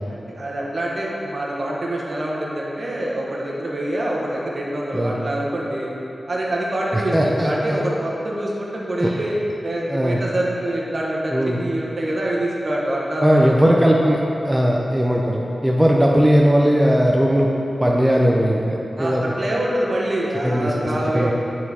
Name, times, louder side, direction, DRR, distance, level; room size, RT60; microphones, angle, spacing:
voice 1, 0.1-5.9 6.3-9.3 9.6-13.4 19.0-21.3, right 1 dB, 50° right, -4 dB, 1.2 m, -25 dB
voice 2, 6.9-7.8 9.0-9.1 9.9-10.2 11.3-11.6 13.2-17.5 17.8-19.2 20.4-20.7 21.1-21.3, equal, 10° right, -2 dB, 0.5 m, -18 dB
8.8 x 4.4 x 4.2 m, 2.9 s
wide cardioid pair, 105°, 0 cm